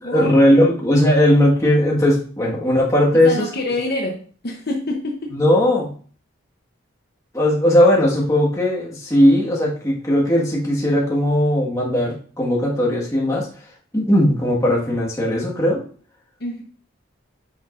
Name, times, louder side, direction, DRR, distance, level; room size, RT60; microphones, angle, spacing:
voice 1, 0.1-3.5 5.3-5.9 7.3-13.5 13.9-15.8, left 1 dB, 15° left, -4 dB, 1.6 m, -17 dB
voice 2, 3.1-5.3 16.4-16.6, left 2 dB, 50° left, 1 dB, 0.9 m, -26 dB
9.0 x 5.6 x 2.6 m, 0.43 s
head